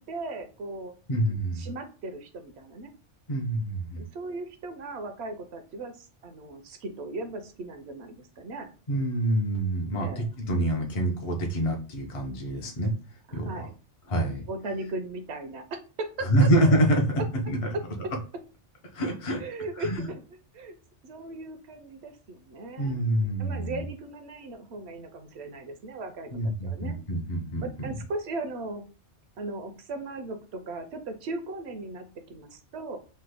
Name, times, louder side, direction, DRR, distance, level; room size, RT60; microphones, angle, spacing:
voice 1, 0.0-0.9 1.5-2.9 4.0-8.7 10.0-10.3 13.3-13.7 14.5-16.5 16.9-17.8 19.4-20.2 20.5-20.8 21.0-23.0 23.4-27.0 27.6-28.9 29.4-33.0, right 2 dB, 70° right, 7 dB, 0.8 m, -37 dB
voice 2, 1.1-1.7 3.3-4.0 8.9-12.9 13.3-13.5 14.1-14.4 16.2-17.0 17.4-17.6 18.9-19.4 19.8-20.1 22.8-23.8 26.3-27.9, right 1 dB, 40° left, 2 dB, 0.5 m, -26 dB
3.1 x 2.1 x 3.3 m, 0.34 s
omnidirectional pair, 1.2 m